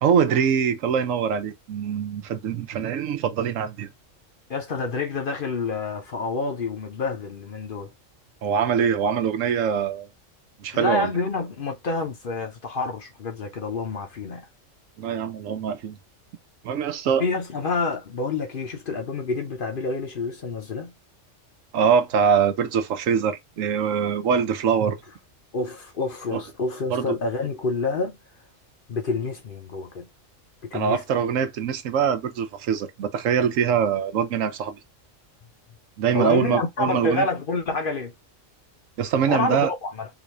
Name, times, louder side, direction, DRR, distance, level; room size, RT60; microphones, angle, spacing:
voice 1, 0.0-3.9 8.4-10.1 10.6-11.1 15.0-16.0 16.6-17.3 21.7-25.0 26.3-26.4 26.9-27.2 30.7-34.8 36.0-37.3 39.0-39.7, right 7 dB, 80° right, 1.1 m, -23 dB
voice 2, 4.5-7.9 10.7-14.5 17.2-20.9 25.5-28.2 28.9-30.1 30.6-31.0 36.1-38.1 39.3-40.1, left 3 dB, 50° left, 0.8 m, -28 dB
3.9 x 2.5 x 3.0 m
omnidirectional pair, 1.3 m